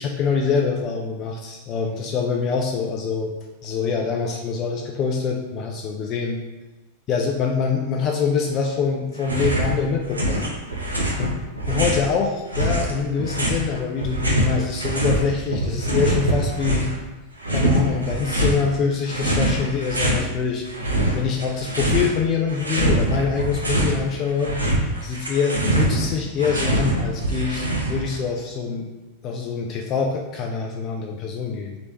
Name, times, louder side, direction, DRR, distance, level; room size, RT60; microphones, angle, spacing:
voice 1, 0.0-3.3 3.6-6.4 7.1-10.7 11.2-11.3 11.7-16.9 17.5-20.6 21.1-24.5 25.0-28.9 29.2-31.8, left 5 dB, 35° left, 1 dB, 0.3 m, -25 dB
sound 1, 9.2-9.7 10.0-12.1 12.5-15.2 15.5-17.0 17.4-18.6 19.1-20.2 20.6-22.2 22.5-24.0 24.3-28.2, right 1 dB, 80° right, 0.5 m, -23 dB
3.0 x 3.0 x 2.8 m, 1.1 s
figure-of-eight pair, 90°, 0 cm